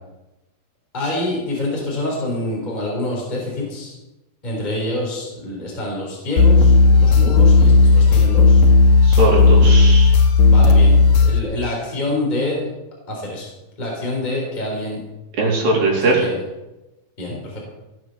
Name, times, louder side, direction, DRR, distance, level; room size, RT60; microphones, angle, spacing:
voice 1, 0.9-3.9 4.4-8.7 10.4-12.6 13.1-13.5 13.8-15.0 16.0-16.4 17.2-17.6, left 1 dB, 10° left, -3 dB, 4.0 m, -26 dB
sound 1, 6.4-11.4, left 3 dB, 80° left, 3.4 m, -12 dB
voice 2, 9.0-10.2 15.4-16.3, right 2 dB, 80° right, -3 dB, 5.3 m, -19 dB
18.0 x 7.9 x 6.6 m, 1.0 s
omnidirectional pair, 4.1 m